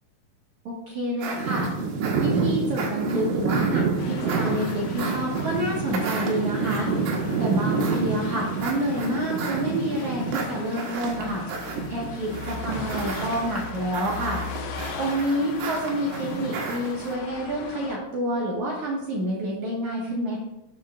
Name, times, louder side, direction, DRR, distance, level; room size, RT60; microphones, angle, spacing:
voice 1, 0.6-1.7 2.2-14.4 15.0-20.4, equal, 65° right, -3 dB, 2.0 m, -28 dB
sound 1, 1.2-17.1, right 4 dB, 90° right, 3.8 m, -28 dB
sound 2, 4.0-18.0, left 5 dB, 85° left, 3.3 m, -39 dB
12.0 x 8.3 x 2.4 m, 0.90 s
omnidirectional pair, 5.4 m